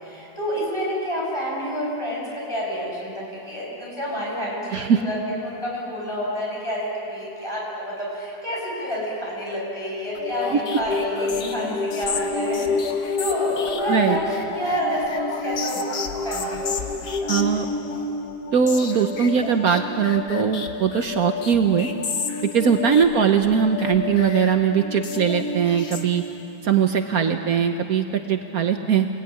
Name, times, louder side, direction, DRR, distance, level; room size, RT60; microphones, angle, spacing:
voice 1, 0.0-2.2 2.5-5.2 5.4-16.9 17.2-17.3 22.7-22.9, equal, 15° left, -5 dB, 8.2 m, -29 dB
voice 2, 4.7-5.0 10.5-10.6 13.9-14.2 17.3-17.6 18.5-21.9 22.4-26.2 26.6-29.1, right 7 dB, 65° right, 6 dB, 1.4 m, -20 dB
sound 1, 10.2-26.6, left 4 dB, 75° left, 1.9 m, -29 dB
28.0 x 18.0 x 9.7 m, 2.9 s
omnidirectional pair, 1.7 m